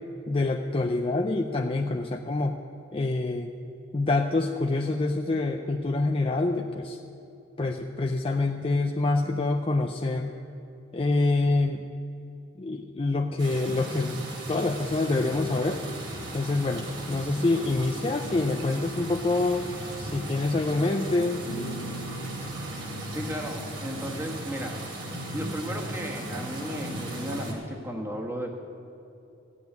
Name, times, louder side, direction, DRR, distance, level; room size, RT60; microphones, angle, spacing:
voice 1, 0.3-2.6 2.9-3.5 3.9-7.0 7.6-10.3 10.9-11.8 12.6-14.2 14.5-15.8 16.3-19.7 20.0-21.4, left 2 dB, 30° left, 3 dB, 0.5 m, -26 dB
sound 1, 13.4-27.5, right 1 dB, 70° right, 2.9 m, -37 dB
sound 2, 14.7-23.0, left 1 dB, 85° left, 1.3 m, -51 dB
sound 3, 21.4-26.4, right 1 dB, 50° left, 2.0 m, -43 dB
voice 2, 23.1-24.8 25.3-28.6, equal, 15° right, 0 dB, 1.6 m, -34 dB
15.0 x 7.1 x 9.3 m, 2.8 s
head